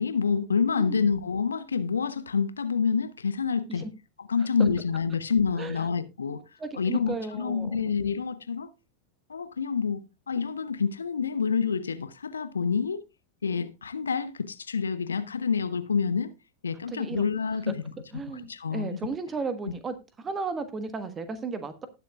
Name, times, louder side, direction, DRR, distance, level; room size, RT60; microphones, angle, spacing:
voice 1, 0.0-3.9 4.3-6.4 6.8-8.7 9.3-13.0 13.4-16.3 16.6-17.8 18.4-19.0, left 6 dB, 70° left, 0.8 m, -27 dB
voice 2, 0.8-1.1 3.7-3.9 5.5-5.8 6.6-8.0 16.9-17.2 17.7-17.8 18.1-21.9, right 4 dB, 20° right, 1.3 m, -35 dB
19.0 x 6.9 x 2.4 m
figure-of-eight pair, 90°, 0 cm